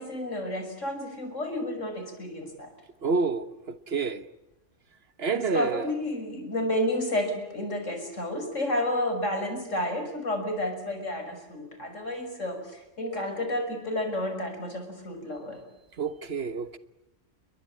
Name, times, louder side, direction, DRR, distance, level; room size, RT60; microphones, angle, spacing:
voice 1, 0.0-2.7 5.3-15.6, left 1 dB, 80° left, 6.4 m, -31 dB
voice 2, 3.0-4.3 5.2-5.9 16.0-16.8, right 4 dB, 55° right, 1.4 m, -28 dB
29.5 x 23.0 x 8.7 m
omnidirectional pair, 1.3 m